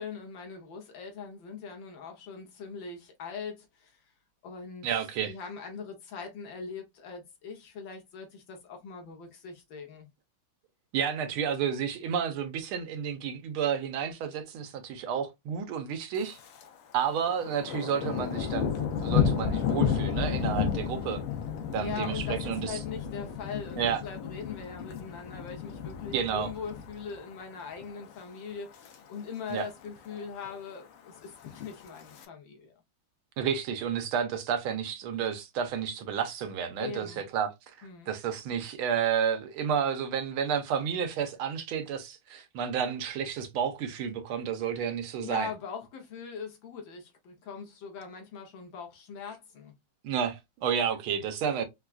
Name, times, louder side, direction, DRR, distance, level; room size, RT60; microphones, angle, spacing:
voice 1, 0.0-4.0 4.4-4.9 5.2-10.1 21.8-32.7 36.8-37.2 37.8-38.1 45.2-49.7, left 6 dB, 65° left, 1.6 m, -41 dB
voice 2, 4.8-5.3 10.9-16.4 16.9-21.2 21.7-22.8 23.8-24.0 26.1-26.5 29.5-29.7 33.4-37.5 37.8-45.5 50.0-51.6, right 7 dB, 80° right, 1.6 m, -31 dB
Thunder, 16.2-16.7 17.0-27.3 27.7-28.1 28.5-29.0 29.2-29.3 29.5-29.6 30.0-30.5 31.3-32.3, left 7 dB, 85° left, 1.7 m, -32 dB
4.4 x 2.3 x 2.3 m
omnidirectional pair, 2.4 m